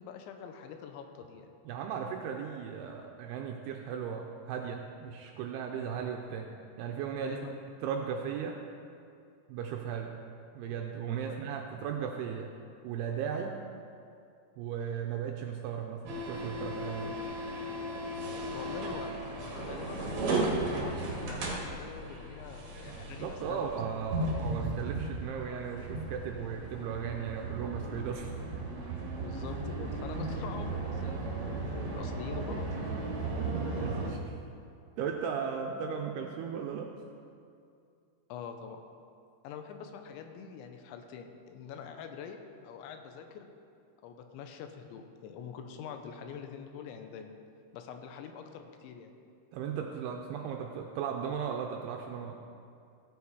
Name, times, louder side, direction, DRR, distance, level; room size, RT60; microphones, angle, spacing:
voice 1, 0.0-1.5 7.2-7.5 11.2-11.4 18.5-19.1 19.4-23.7 29.1-32.8 38.3-38.8 39.4-42.4 42.6-43.5 44.0-47.3 47.7-49.1, left 7 dB, 85° left, 6 dB, 3.1 m, -45 dB
voice 2, 1.7-6.5 6.8-7.4 7.8-8.6 9.5-10.1 10.5-12.5 12.8-13.6 14.6-17.2 22.9-28.3 33.4-34.4 35.0-36.9 40.4-40.5 49.5-52.3, right 7 dB, 85° right, 2 dB, 2.4 m, -36 dB
sound 1, 16.1-34.1, right 2 dB, 50° right, 2.4 m, -36 dB
15.5 x 8.4 x 4.8 m, 2.4 s
omnidirectional pair, 5.2 m